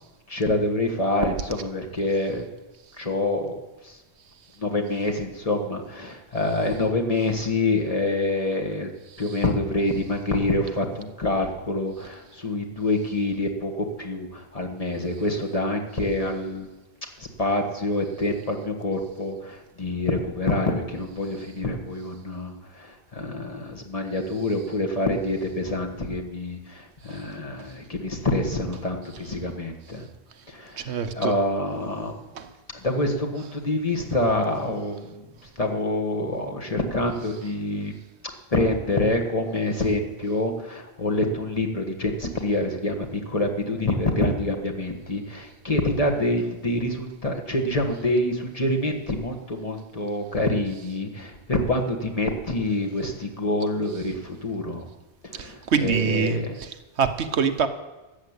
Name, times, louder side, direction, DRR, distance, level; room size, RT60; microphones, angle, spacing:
voice 1, 0.3-2.4 3.0-4.0 4.6-8.9 9.2-16.7 17.2-30.1 30.5-32.1 32.8-35.3 35.6-37.9 38.5-54.8 55.2-56.5, left 2 dB, 35° left, 1 dB, 1.5 m, -26 dB
voice 2, 30.8-31.3 32.3-32.5 55.3-57.7, right 6 dB, 75° right, 9 dB, 1.1 m, -26 dB
13.5 x 7.5 x 8.1 m, 1.1 s
omnidirectional pair, 1.1 m